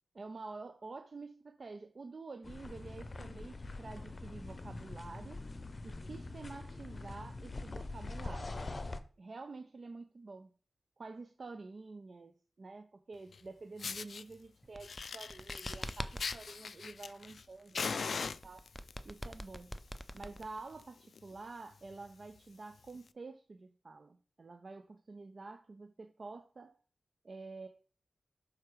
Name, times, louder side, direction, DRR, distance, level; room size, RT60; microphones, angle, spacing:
voice 1, 0.1-5.4 5.8-8.6 9.2-10.5 11.0-18.7 19.0-19.7 20.1-26.7 27.2-27.7, right 3 dB, 50° right, 7 dB, 0.6 m, -49 dB
sound 1, 2.4-9.0, left 2 dB, 40° left, 0.7 m, -44 dB
Fire, 13.3-13.4 13.8-14.2 14.8-17.4 17.7-18.9 19.7-20.0 20.3-20.4 20.8-20.9 21.1-21.4 21.9-22.0 22.9-23.0, left 5 dB, 75° left, 0.3 m, -40 dB
sound 2, 14.6-16.4 18.2-20.8, equal, ahead, 0.5 m, -43 dB
6.6 x 4.8 x 4.6 m, 0.38 s
wide cardioid pair, 85°, 0 cm